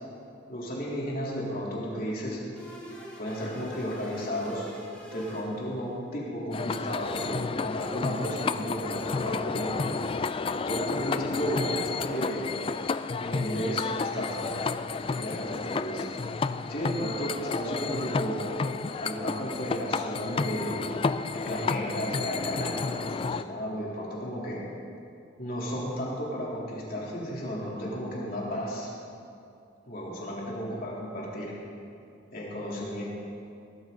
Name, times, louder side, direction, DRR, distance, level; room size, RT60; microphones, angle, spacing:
voice 1, 0.5-2.4 3.2-4.7 5.1-9.8 10.7-12.4 13.2-14.6 15.1-16.1 16.7-18.4 19.0-20.8 21.3-24.6 25.4-28.9 29.9-31.5 32.3-33.0, equal, 50° left, -5 dB, 3.5 m, -33 dB
sound 1, 2.6-6.1, left 1 dB, 5° left, 2.7 m, -45 dB
sound 2, 6.5-23.4, left 4 dB, 30° left, 0.3 m, -31 dB
19.0 x 13.0 x 4.0 m, 2.6 s
head